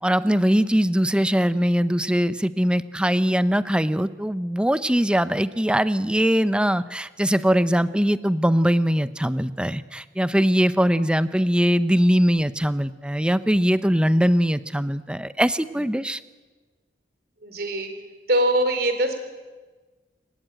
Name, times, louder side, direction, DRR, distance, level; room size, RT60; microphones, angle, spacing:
voice 1, 0.0-16.2, equal, 5° right, 13 dB, 0.6 m, -21 dB
voice 2, 17.4-17.9 18.3-19.2, right 1 dB, 60° right, 7 dB, 3.9 m, -22 dB
28.5 x 15.5 x 9.1 m, 1.3 s
head